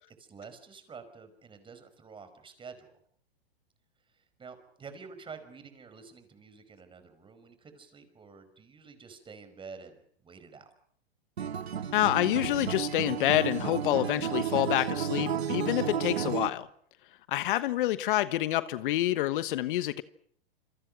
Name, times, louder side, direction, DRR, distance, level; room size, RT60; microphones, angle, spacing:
voice 1, 0.1-2.9 4.0-10.7, right 5 dB, 15° right, 5.1 m, -49 dB
Acoustic guitar, 11.4-16.5, right 8 dB, 85° right, 2.0 m, -32 dB
voice 2, 11.9-16.7 17.3-20.0, left 15 dB, 55° left, 1.3 m, -27 dB
sound 1, 12.3-13.5 18.4-18.5, right 10 dB, 70° right, 2.6 m, -49 dB
28.0 x 26.0 x 6.4 m
hypercardioid pair, 120°, 31 cm